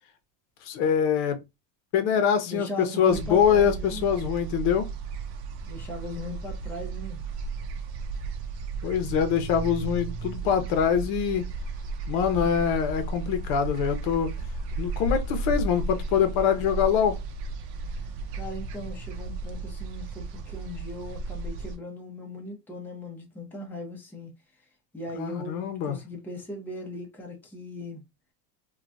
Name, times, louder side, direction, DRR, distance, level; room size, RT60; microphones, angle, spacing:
voice 1, 0.7-1.4 1.9-2.7 3.0-4.9 8.8-11.4 12.1-14.3 14.8-17.2 25.1-26.0, left 8 dB, 55° left, 0.8 m, -24 dB
voice 2, 2.4-4.1 5.7-7.2 18.3-24.3 24.9-28.0, left 1 dB, 5° left, 0.7 m, -38 dB
sound 1, 3.1-21.8, right 3 dB, 75° right, 0.8 m, -34 dB
3.0 x 2.3 x 2.5 m
supercardioid pair, 130°, 48 cm